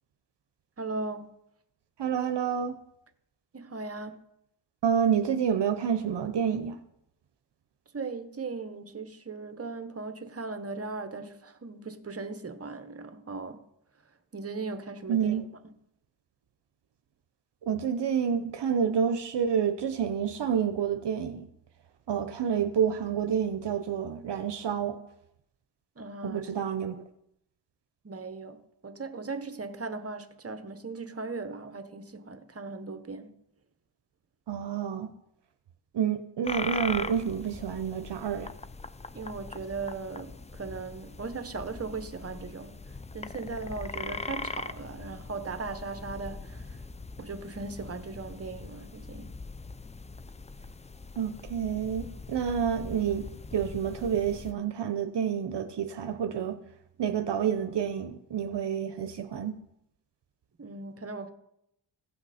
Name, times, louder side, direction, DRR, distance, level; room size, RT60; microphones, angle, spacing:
voice 1, 0.8-1.3 3.5-4.2 7.9-13.6 14.3-15.4 26.0-26.4 28.0-28.6 28.8-33.3 39.1-46.8 47.2-49.3 60.6-61.3, right 3 dB, 30° right, 1.1 m, -38 dB
voice 2, 2.0-2.8 4.8-6.8 15.1-15.4 17.6-21.5 22.1-25.0 26.2-27.0 34.5-35.1 35.9-38.5 51.2-56.6 57.0-59.6, right 8 dB, 65° right, 0.8 m, -29 dB
sound 1, 36.4-54.5, left 3 dB, 15° left, 0.4 m, -41 dB
16.0 x 5.8 x 4.2 m
cardioid pair, 65°, 45 cm